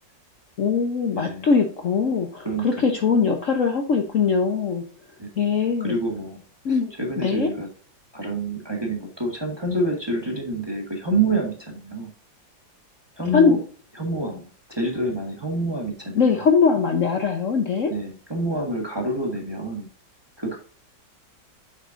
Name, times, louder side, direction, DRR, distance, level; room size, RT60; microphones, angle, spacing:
voice 1, 0.6-4.8 5.4-5.9 6.6-7.5 13.3-13.6 16.1-17.9, left 5 dB, 50° left, 4 dB, 1.1 m, -21 dB
voice 2, 1.1-1.5 2.4-2.8 5.2-5.3 5.8-6.4 6.7-7.7 8.1-12.1 13.2-13.6 13.9-16.5 17.9-19.9 20.4-20.6, right 2 dB, 15° right, 1 dB, 1.4 m, -27 dB
8.2 x 5.9 x 2.5 m, 0.42 s
omnidirectional pair, 2.0 m